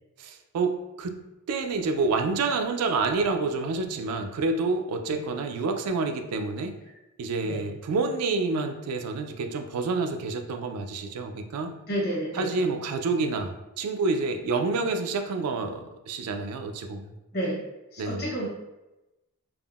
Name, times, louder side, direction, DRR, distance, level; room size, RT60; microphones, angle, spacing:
voice 1, 0.2-1.2 1.5-6.8 7.2-11.7 12.3-17.1 18.0-18.3, right 3 dB, 90° right, 6 dB, 0.3 m, -28 dB
voice 2, 11.9-12.5 17.3-17.6 17.9-18.5, right 1 dB, 45° left, -4 dB, 0.8 m, -30 dB
3.5 x 2.0 x 2.3 m, 0.99 s
head